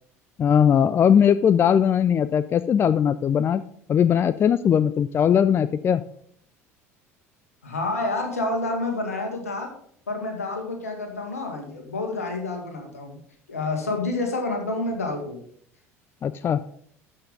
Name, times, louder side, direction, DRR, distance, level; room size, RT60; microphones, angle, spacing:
voice 1, 0.4-3.6 3.9-6.0 16.2-16.6, left 8 dB, 30° left, 15 dB, 0.4 m, -19 dB
voice 2, 7.6-9.7 10.1-13.2 13.5-15.4, left 2 dB, 75° left, 3 dB, 2.0 m, -28 dB
12.0 x 5.6 x 5.3 m, 0.62 s
figure-of-eight pair, 65°, 8 cm